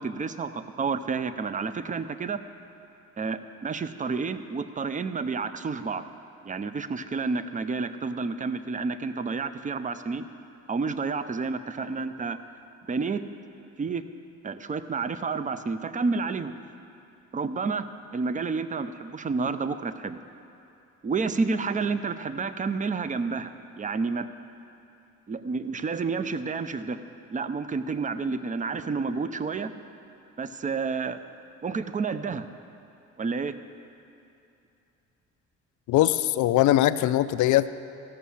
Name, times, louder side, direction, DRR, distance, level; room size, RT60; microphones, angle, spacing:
voice 1, 0.0-2.4 3.2-6.1 6.4-10.3 10.7-12.4 12.9-13.2 13.8-14.0 14.4-16.5 17.3-17.9 18.1-20.2 21.0-24.3 25.3-27.0 27.3-29.7 30.4-31.2 31.6-32.5 33.2-33.5, right 4 dB, 25° right, 11 dB, 0.5 m, -30 dB
voice 2, 35.9-37.8, left 14 dB, 75° left, 14 dB, 0.5 m, -21 dB
14.5 x 6.3 x 7.0 m, 2.7 s
cardioid pair, 90°, 30 cm